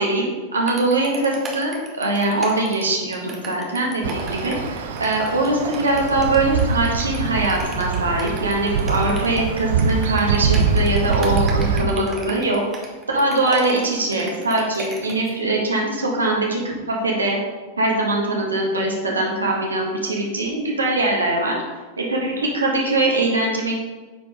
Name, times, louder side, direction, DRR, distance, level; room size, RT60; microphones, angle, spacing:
voice 1, 0.0-12.6 13.1-16.6 16.9-17.4 17.8-21.6 22.0-23.8, right 2 dB, 75° right, -1 dB, 1.7 m, -22 dB
sound 1, 0.7-15.3, right 2 dB, 20° right, 1.4 m, -35 dB
sound 2, 4.0-11.8, right 5 dB, 60° right, 0.7 m, -23 dB
9.5 x 4.5 x 3.7 m, 1.3 s
figure-of-eight pair, 90°, 0 cm